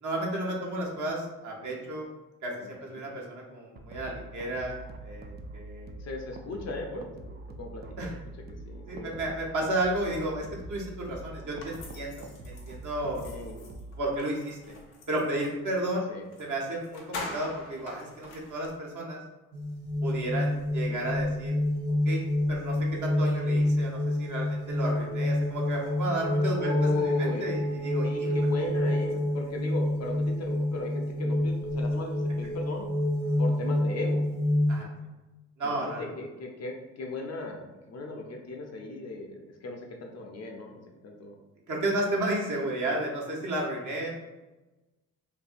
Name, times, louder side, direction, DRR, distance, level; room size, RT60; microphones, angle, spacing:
voice 1, 0.0-2.1 2.4-4.8 5.0-6.0 8.0-8.1 8.9-13.2 14.0-14.8 15.1-16.0 16.4-19.2 20.0-21.5 22.0-22.2 22.5-28.3 34.7-34.9 35.6-36.1 41.7-44.1, right 1 dB, 45° right, -2 dB, 1.0 m, -32 dB
voice 2, 2.6-3.0 6.0-7.8 8.1-8.2 8.7-9.3 13.2-13.6 16.1-16.3 20.9-21.1 26.5-27.5 28.0-32.9 33.4-34.2 35.6-41.4 41.9-42.2, left 3 dB, 40° left, 1 dB, 0.5 m, -37 dB
sound 1, 3.8-14.2, right 2 dB, 25° right, 0.4 m, -44 dB
sound 2, 11.6-15.6 16.3-16.5 16.7-18.8, left 3 dB, 90° left, 0.6 m, -44 dB
sound 3, 19.5-34.8, left 1 dB, 80° right, 0.6 m, -28 dB
2.6 x 2.5 x 2.5 m, 1.1 s
hypercardioid pair, 50°, 40 cm